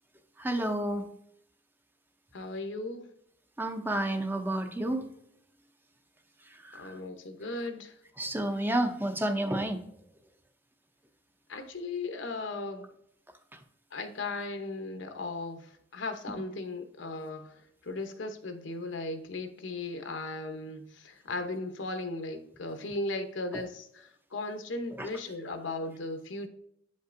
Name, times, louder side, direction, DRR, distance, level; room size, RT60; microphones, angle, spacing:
voice 1, 0.4-1.0 3.6-5.1 6.5-7.0 8.2-9.8 13.5-13.6 23.5-23.7 25.0-25.1, right 1 dB, 10° right, 6 dB, 0.5 m, -30 dB
voice 2, 2.3-3.0 6.7-7.9 11.5-12.9 13.9-26.5, left 2 dB, 75° left, 7 dB, 0.8 m, -37 dB
8.4 x 5.3 x 2.5 m, 0.72 s
head